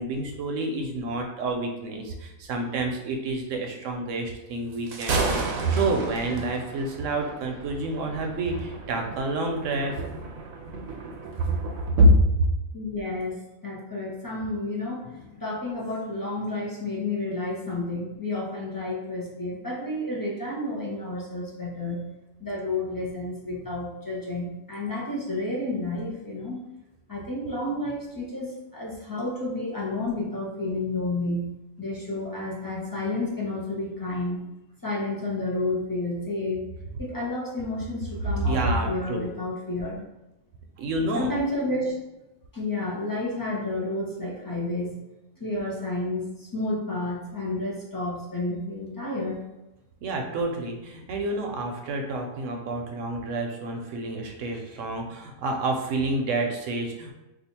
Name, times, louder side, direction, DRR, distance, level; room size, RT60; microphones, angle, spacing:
voice 1, 0.0-10.0 12.0-12.5 38.5-39.3 40.8-41.4 50.0-57.1, right 1 dB, 75° right, 2 dB, 0.9 m, -27 dB
Thunder, 4.7-12.0, right 3 dB, 90° right, 1.1 m, -33 dB
voice 2, 12.7-22.1 22.4-26.6 27.1-34.4 34.8-36.7 37.0-40.0 41.1-41.9 42.5-45.0 45.4-49.4, left 2 dB, 30° left, -5 dB, 0.4 m, -31 dB
2.8 x 2.4 x 4.2 m, 1.0 s
omnidirectional pair, 1.4 m